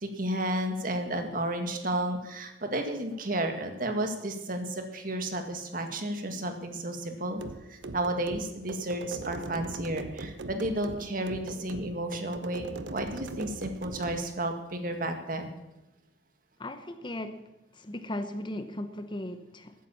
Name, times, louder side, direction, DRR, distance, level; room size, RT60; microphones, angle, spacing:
voice 1, 0.0-7.4 7.7-15.5, right 1 dB, 50° right, 5 dB, 1.9 m, -32 dB
sound 1, 7.4-14.2, right 3 dB, 85° right, 0.9 m, -40 dB
voice 2, 16.6-17.4 17.7-19.7, left 1 dB, 25° left, 9 dB, 0.8 m, -37 dB
14.0 x 9.4 x 7.1 m, 0.95 s
head